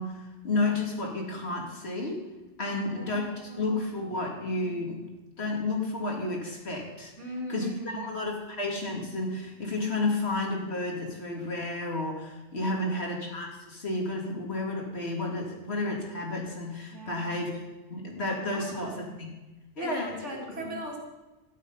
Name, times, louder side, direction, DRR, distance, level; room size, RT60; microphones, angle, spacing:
voice 1, 0.0-2.2 2.6-5.1 5.4-7.1 7.5-17.5 17.9-19.1 19.8-20.7, left 2 dB, 60° left, -1 dB, 2.7 m, -31 dB
voice 2, 2.7-4.3 7.2-8.3 12.6-13.2 16.9-17.5 18.5-19.2 19.8-21.0, right 2 dB, 85° right, -1 dB, 3.1 m, -41 dB
12.5 x 10.5 x 5.6 m, 1.1 s
omnidirectional pair, 1.2 m